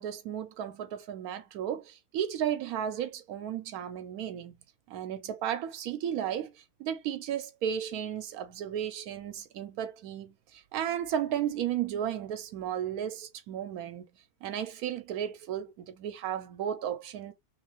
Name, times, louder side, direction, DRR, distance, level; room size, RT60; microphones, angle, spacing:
voice 1, 0.0-4.5 4.9-6.5 6.8-14.0 14.4-17.3, right 9 dB, 80° right, 1.1 m, -34 dB
3.1 x 3.0 x 3.0 m
omnidirectional pair, 1.6 m